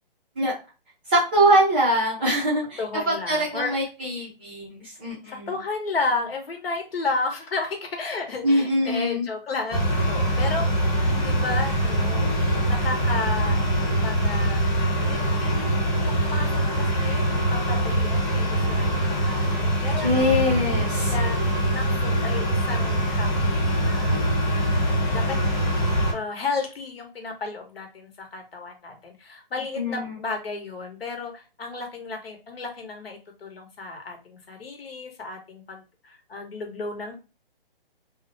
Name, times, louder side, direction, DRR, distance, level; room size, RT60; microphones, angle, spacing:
voice 1, 1.1-2.8 3.1-5.5 8.4-9.2 20.0-21.1 29.8-30.1, equal, 10° right, -7 dB, 0.4 m, -23 dB
voice 2, 2.8-3.8 5.3-12.2 12.6-14.6 15.1-15.5 16.0-20.5 21.1-21.4 21.8-24.2 24.6-25.4 25.9-37.1, left 3 dB, 80° left, 4 dB, 0.9 m, -33 dB
sound 1, 9.7-26.1, equal, 25° left, 0.9 m, -23 dB
2.5 x 2.1 x 2.5 m, 0.31 s
hypercardioid pair, 150°, 29 cm